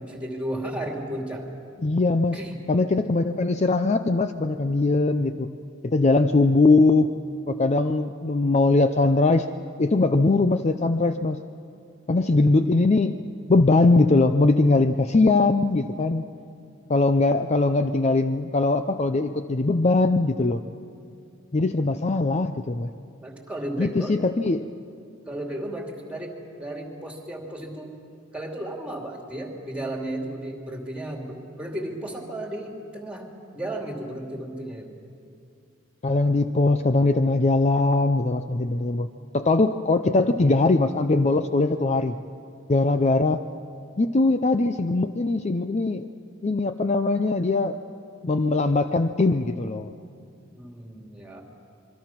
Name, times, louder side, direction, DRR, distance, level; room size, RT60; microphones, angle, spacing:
voice 1, 0.1-1.5 2.3-2.6 23.2-24.2 25.3-27.9 28.3-33.3 33.5-34.9 50.6-51.4, right 1 dB, 5° right, 1 dB, 2.8 m, -34 dB
voice 2, 1.8-2.4 2.7-5.5 5.8-7.1 7.5-9.5 9.8-11.4 12.1-13.2 13.5-16.2 16.9-20.6 21.5-22.9 23.8-24.7 36.0-39.1 39.3-42.2 42.7-43.4 44.0-46.1 46.4-47.8 48.2-49.9, left 3 dB, 35° left, 9 dB, 0.5 m, -21 dB
26.5 x 23.0 x 6.0 m, 2.4 s
head